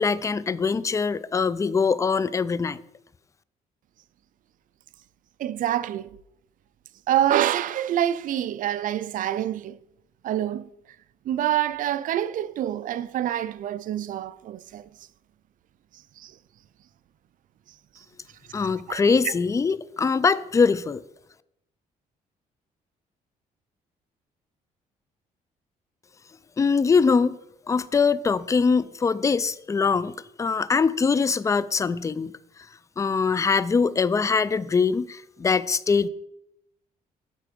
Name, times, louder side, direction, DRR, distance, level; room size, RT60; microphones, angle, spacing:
voice 1, 0.0-2.8 18.5-21.0 26.6-27.4 27.7-30.1 30.4-32.3 33.0-36.1, left 5 dB, 20° left, 0.3 m, -22 dB
voice 2, 5.4-6.1 7.1-9.8 10.2-10.7 11.3-14.9 16.2-16.3 18.9-19.3, right 11 dB, 60° right, 0.4 m, -26 dB
8.4 x 4.4 x 5.1 m
cardioid pair, 95°, 15 cm